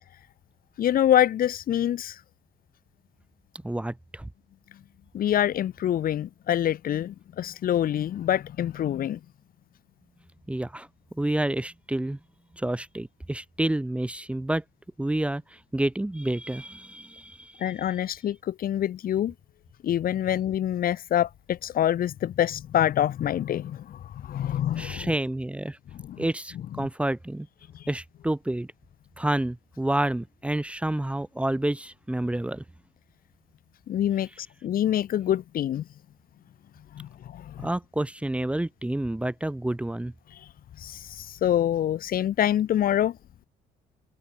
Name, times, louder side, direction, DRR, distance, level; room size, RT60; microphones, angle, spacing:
voice 1, 0.8-2.2 5.1-9.2 17.6-19.3 19.8-25.1 26.0-26.3 33.9-35.8 36.9-37.7 40.8-43.2, left 11 dB, 60° left, 3.8 m, -26 dB
voice 2, 3.6-4.3 10.5-10.9 11.1-12.2 12.6-14.6 15.0-17.7 24.8-25.8 26.2-27.5 27.9-28.7 29.2-32.6 37.6-40.1, right 1 dB, 5° right, 1.7 m, -29 dB
cardioid pair, 110°, 17 cm